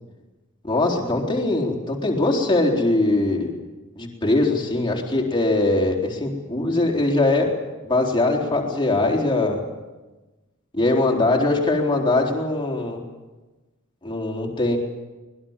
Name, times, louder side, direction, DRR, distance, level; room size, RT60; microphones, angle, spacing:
voice 1, 0.6-3.5 4.0-7.5 7.8-9.6 10.7-13.0 14.0-14.8, left 2 dB, 20° left, 0 dB, 4.0 m, -21 dB
24.5 x 20.5 x 7.4 m, 1.2 s
head